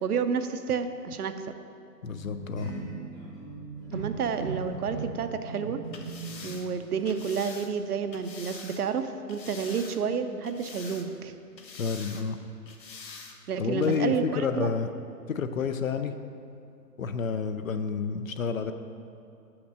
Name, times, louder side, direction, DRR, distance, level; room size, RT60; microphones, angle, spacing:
voice 1, 0.0-1.3 3.9-5.8 6.4-11.3 13.5-14.7, right 6 dB, 65° right, 9 dB, 0.7 m, -30 dB
voice 2, 2.0-2.7 11.8-12.4 13.6-14.9 15.3-16.1 17.0-18.7, left 5 dB, 55° left, 9 dB, 0.5 m, -29 dB
sound 1, 2.1-6.7 6.9-7.3, right 3 dB, 10° left, 0.7 m, -39 dB
sound 2, 5.8-8.8 9.3-10.1 10.4-11.3 11.6-12.3 12.7-13.4 13.8-14.0, left 4 dB, 90° left, 1.1 m, -45 dB
6.1 x 5.9 x 6.6 m, 2.6 s
hypercardioid pair, 155°, 49 cm